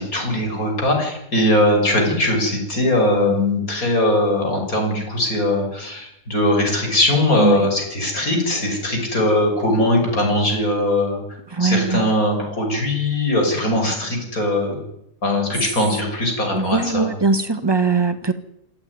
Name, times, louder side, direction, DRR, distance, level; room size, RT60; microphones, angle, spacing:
voice 1, 0.0-11.2 11.6-14.8 15.2-17.1, left 1 dB, 85° left, 2 dB, 6.7 m, -20 dB
voice 2, 11.6-12.1 16.5-18.3, right 4 dB, 20° right, 10 dB, 1.6 m, -20 dB
27.0 x 13.5 x 9.7 m, 0.79 s
omnidirectional pair, 1.5 m